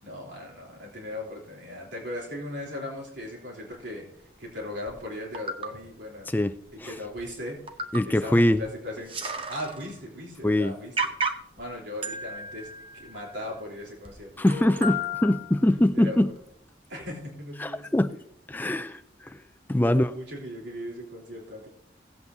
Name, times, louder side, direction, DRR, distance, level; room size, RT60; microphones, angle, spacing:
voice 1, 0.0-6.3 6.7-7.6 8.0-9.2 9.5-10.9 11.6-14.9 16.0-16.3 16.9-18.2 19.7-21.7, left 1 dB, 80° right, -2 dB, 3.5 m, -38 dB
sound 1, 4.9-5.0 5.3-5.7 6.7-6.8 7.2-7.3 7.7-8.2 8.5-8.6 8.9-10.0 10.4-10.5 11.0-11.6 12.0-13.6 14.1-14.2 14.5-15.8 16.4-16.5, right 1 dB, 30° right, 0.9 m, -33 dB
voice 2, 6.3-6.9 7.9-8.6 10.4-10.8 14.4-16.3 17.6-18.2 18.5-19.4 19.7-20.1, left 1 dB, 10° left, 11 dB, 0.3 m, -23 dB
17.5 x 8.4 x 2.7 m, 0.68 s
head